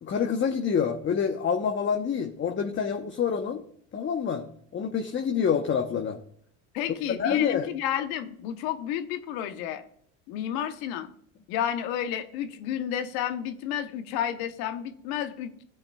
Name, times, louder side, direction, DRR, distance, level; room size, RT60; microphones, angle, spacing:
voice 1, 0.0-3.6 3.9-4.4 4.7-6.2 7.1-7.7, left 7 dB, 30° left, 4 dB, 0.9 m, -27 dB
voice 2, 6.7-9.8 10.3-11.1 11.5-15.6, left 10 dB, 70° left, 9 dB, 1.0 m, -31 dB
15.0 x 8.0 x 2.3 m, 0.63 s
supercardioid pair, 95°, 37 cm